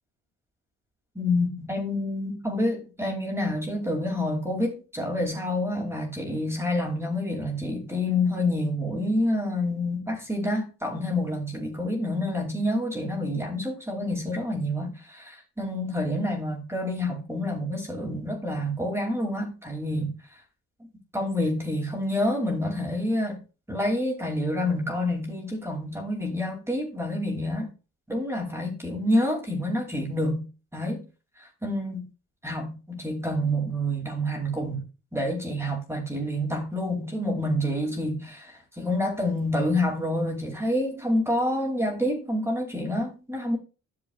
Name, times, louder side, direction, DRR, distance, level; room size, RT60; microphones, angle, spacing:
voice 1, 1.1-20.1 21.1-23.4 23.7-27.7 28.1-30.4 30.7-31.0 31.4-32.1 32.4-34.8 35.1-43.6, left 1 dB, 10° right, 2.6 m, -28 dB
11.5 x 6.8 x 2.3 m
cardioid pair, 90°, 30 cm